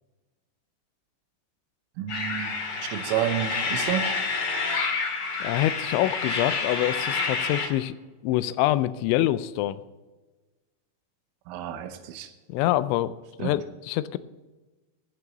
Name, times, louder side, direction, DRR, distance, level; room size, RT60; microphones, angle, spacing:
voice 1, 2.0-2.5 2.8-4.1 11.5-12.3 13.4-13.6, right 11 dB, 85° right, 8 dB, 3.4 m, -30 dB
sound 1, 2.1-7.7, left 4 dB, 45° left, 2.3 m, -28 dB
voice 2, 5.4-8.0 8.2-9.8 12.5-13.1 13.4-14.2, left 14 dB, 85° left, 15 dB, 2.8 m, -25 dB
15.0 x 6.9 x 6.8 m, 1.2 s
omnidirectional pair, 5.6 m